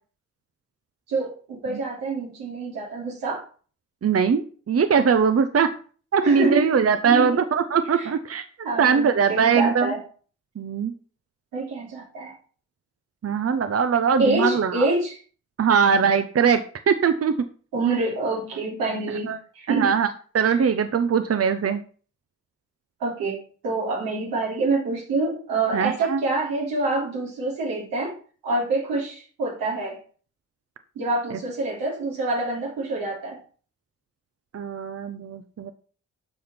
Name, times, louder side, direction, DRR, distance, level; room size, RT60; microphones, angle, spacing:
voice 1, 1.1-3.4 6.2-6.7 7.0-7.4 8.0-8.1 8.6-10.0 11.5-12.4 14.2-15.2 17.7-19.9 23.0-28.1 28.4-30.0 30.9-33.4, right 2 dB, 85° right, -2 dB, 3.2 m, -26 dB
voice 2, 4.0-5.7 6.1-8.4 8.8-9.9 10.6-10.9 13.2-14.9 15.6-17.3 19.3-19.4 19.7-20.1 20.3-21.8 25.7-26.2 34.5-35.7, right 6 dB, 45° right, 10 dB, 0.9 m, -21 dB
12.5 x 5.1 x 4.4 m, 0.41 s
supercardioid pair, 40°, 34 cm